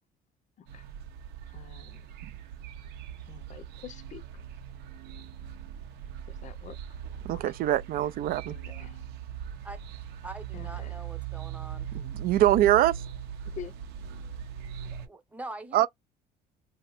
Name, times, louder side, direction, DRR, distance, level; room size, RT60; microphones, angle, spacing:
sound 1, 0.7-15.1, right 9 dB, 80° right, 0.7 m, -40 dB
voice 1, 1.5-2.1 3.3-4.2 6.3-6.8 7.3-7.4 8.5-9.0 10.5-10.9 13.5-13.7, left 9 dB, 45° left, 0.5 m, -46 dB
voice 2, 7.2-8.5 11.9-13.0 15.7-15.9, right 13 dB, 60° right, 0.4 m, -24 dB
voice 3, 10.2-12.0 14.8-15.9, right 1 dB, 10° right, 0.9 m, -43 dB
2.8 x 2.2 x 4.1 m
cardioid pair, 115°, 17 cm